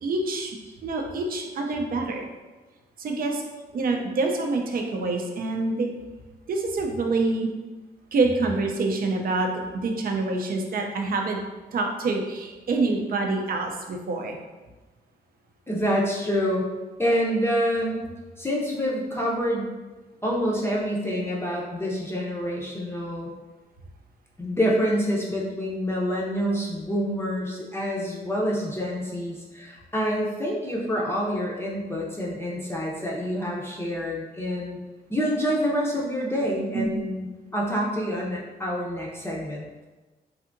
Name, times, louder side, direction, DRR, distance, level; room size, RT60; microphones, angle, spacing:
voice 1, 0.0-2.3 3.0-3.4 3.7-5.9 6.5-7.5 8.1-9.5 9.7-11.4 11.7-14.4 36.7-37.0, right 3 dB, 60° right, 2 dB, 0.5 m, -26 dB
voice 2, 15.7-16.7 17.0-18.0 18.4-19.7 20.2-23.3 24.4-34.8 35.1-37.3 37.5-39.9, equal, 15° left, -4 dB, 0.6 m, -27 dB
3.3 x 2.7 x 2.5 m, 1.2 s
cardioid pair, 90°, 17 cm